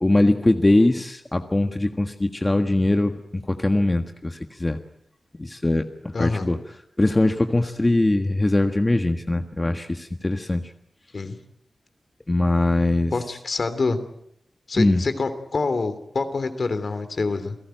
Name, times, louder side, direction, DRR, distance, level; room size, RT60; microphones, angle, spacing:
voice 1, 0.0-4.8 5.4-6.6 7.0-10.7 12.3-13.1 14.8-15.0, left 2 dB, 25° left, 6 dB, 1.5 m, -21 dB
voice 2, 6.1-6.5 11.1-11.4 13.1-14.0 14.7-17.6, left 3 dB, 60° left, 10 dB, 3.0 m, -26 dB
29.0 x 17.5 x 9.1 m, 0.76 s
wide cardioid pair, 85°, 0 cm